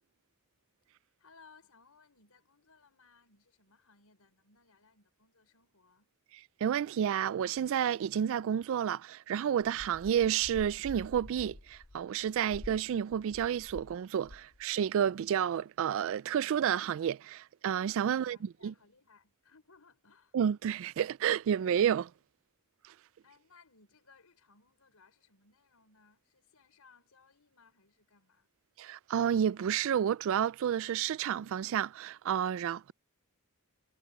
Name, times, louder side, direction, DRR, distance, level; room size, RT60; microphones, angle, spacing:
voice 1, 1.2-6.1 18.0-20.4 23.2-28.5, left 4 dB, 85° left, 4.7 m, -63 dB
voice 2, 6.6-18.7 20.3-22.1 28.8-32.9, right 9 dB, 65° right, 0.3 m, -30 dB
sound 1, 9.6-14.0 14.2-14.6, left 1 dB, 35° left, 0.8 m, -49 dB
head